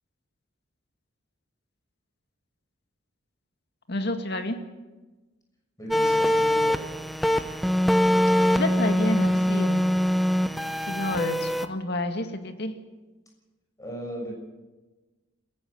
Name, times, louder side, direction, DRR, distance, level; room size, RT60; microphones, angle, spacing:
voice 1, 3.9-4.6 8.5-9.8 10.9-12.7, left 1 dB, 55° left, 6 dB, 2.0 m, -29 dB
voice 2, 5.8-6.8 13.8-14.3, right 1 dB, 15° left, 0 dB, 6.5 m, -36 dB
sound 1, 5.9-11.7, equal, ahead, 0.8 m, -23 dB
27.5 x 15.0 x 6.9 m, 1.2 s
head